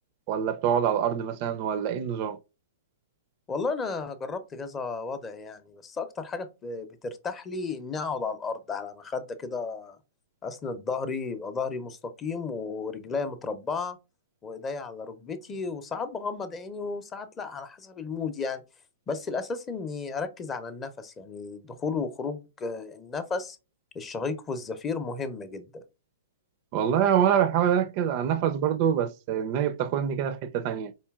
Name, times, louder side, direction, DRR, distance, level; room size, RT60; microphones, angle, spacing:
voice 1, 0.3-2.4 26.7-30.9, right 9 dB, 45° right, 0.4 m, -25 dB
voice 2, 3.5-10.0 10.4-14.0 14.4-18.6 19.1-23.6 23.9-25.8, left 4 dB, 20° left, 0.5 m, -33 dB
4.3 x 2.7 x 2.3 m
figure-of-eight pair, 110°, 0 cm